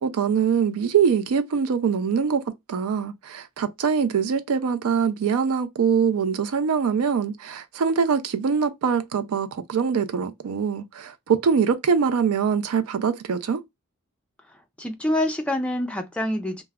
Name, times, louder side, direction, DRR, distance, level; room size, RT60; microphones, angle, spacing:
voice 1, 0.0-2.4 2.7-13.6, right 6 dB, 85° right, 0.4 m, -23 dB
voice 2, 14.8-16.6, left 1 dB, 5° left, 0.3 m, -26 dB
2.3 x 2.0 x 3.3 m
head